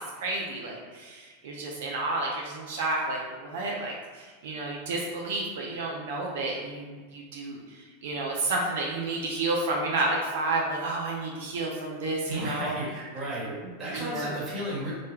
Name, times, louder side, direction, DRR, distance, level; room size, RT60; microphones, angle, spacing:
voice 1, 0.2-12.8 13.4-14.4, right 2 dB, 75° right, -2 dB, 0.4 m, -31 dB
voice 2, 12.3-13.5 13.8-14.9, equal, 20° right, -8 dB, 1.1 m, -33 dB
2.2 x 2.1 x 3.1 m, 1.5 s
supercardioid pair, 120°, 0 cm